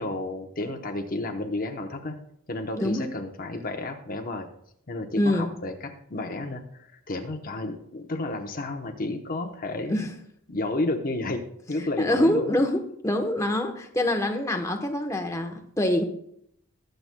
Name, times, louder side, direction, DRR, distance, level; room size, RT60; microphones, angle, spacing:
voice 1, 0.0-2.2 2.5-4.5 4.9-10.1 10.5-12.6, left 2 dB, 40° left, 4 dB, 0.8 m, -31 dB
voice 2, 2.7-3.1 5.2-5.5 9.9-10.1 11.8-16.0, left 1 dB, 15° left, 3 dB, 1.0 m, -25 dB
20.5 x 7.7 x 2.2 m, 0.71 s
head